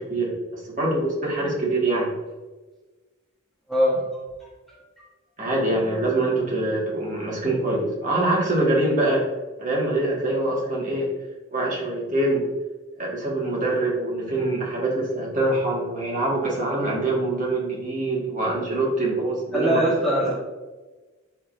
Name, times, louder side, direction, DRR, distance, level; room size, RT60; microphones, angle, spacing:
voice 1, 0.0-2.1 5.4-9.3 9.6-11.1 11.5-12.5 13.0-19.8 20.2-20.3, right 2 dB, 35° right, -4 dB, 2.0 m, -24 dB
voice 2, 3.7-4.5 5.0-5.1 19.5-20.3, equal, ahead, -7 dB, 1.4 m, -23 dB
11.5 x 4.2 x 2.7 m, 1.2 s
head